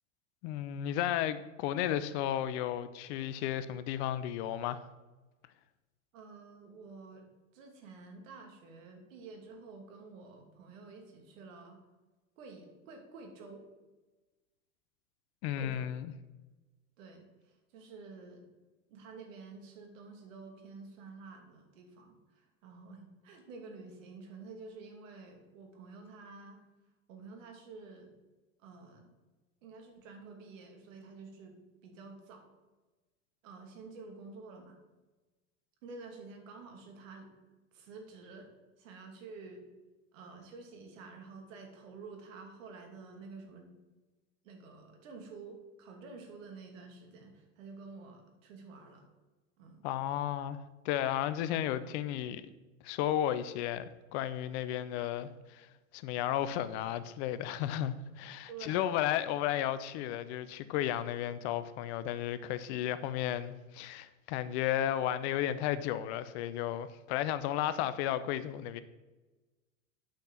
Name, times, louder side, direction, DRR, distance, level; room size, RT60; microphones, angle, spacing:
voice 1, 0.4-4.8 15.4-16.1 49.8-52.4 52.8-55.7 55.9-68.8, left 11 dB, 50° left, 0.8 m, -33 dB
voice 2, 6.1-7.3 7.5-11.8 12.4-13.7 15.6-15.8 17.0-18.5 18.9-26.6 27.1-28.1 28.6-29.1 29.6-32.4 33.4-34.8 35.8-37.3 37.7-38.5 38.8-39.6 40.1-43.7 44.4-49.0 49.6-49.9 58.5-58.9, right 4 dB, 65° right, 2.8 m, -50 dB
9.0 x 5.4 x 7.5 m
hypercardioid pair, 100°, 41 cm